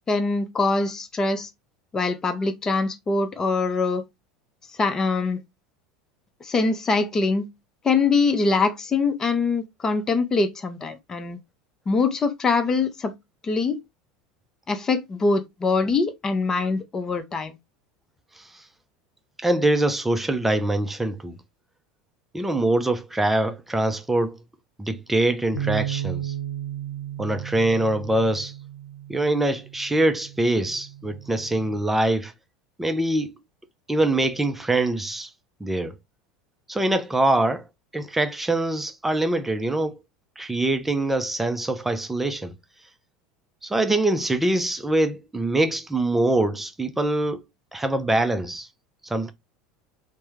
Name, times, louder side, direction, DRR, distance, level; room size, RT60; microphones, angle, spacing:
voice 1, 0.1-1.5 1.9-4.0 4.8-5.4 6.4-7.5 7.8-11.4 11.9-13.1 13.4-13.8 14.7-17.6, left 4 dB, 25° left, 0.8 m, -23 dB
voice 2, 19.4-21.4 22.3-24.4 24.8-26.3 27.2-28.5 29.1-32.3 32.8-33.4 33.9-35.3 35.6-35.9 36.7-37.7 37.9-40.0 40.4-42.5 43.6-47.4 47.7-48.7 49.0-49.3, right 1 dB, 10° right, 0.6 m, -24 dB
Bass guitar, 25.5-31.8, right 11 dB, 85° left, 0.8 m, -34 dB
3.3 x 2.2 x 3.2 m
hypercardioid pair, 75°, 2 cm